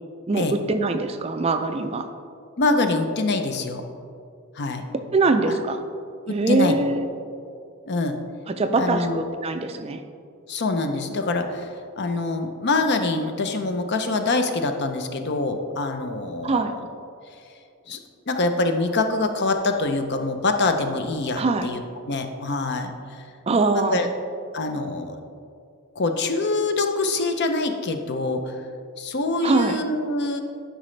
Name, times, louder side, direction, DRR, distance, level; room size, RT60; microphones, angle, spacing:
voice 1, 0.3-2.1 5.1-5.8 6.3-7.2 8.5-10.0 16.4-16.7 21.4-21.7 23.5-24.1 29.4-29.8, right 3 dB, 25° right, 8 dB, 0.3 m, -23 dB
voice 2, 2.6-3.8 4.5-4.8 5.4-5.6 6.3-6.9 7.9-8.2 8.8-9.2 10.5-16.7 17.9-18.0 18.3-23.3 23.7-24.1 24.5-25.2 26.0-28.7 29.0-30.4, left 3 dB, 50° left, 6 dB, 0.6 m, -25 dB
11.5 x 5.1 x 3.2 m, 2.4 s
head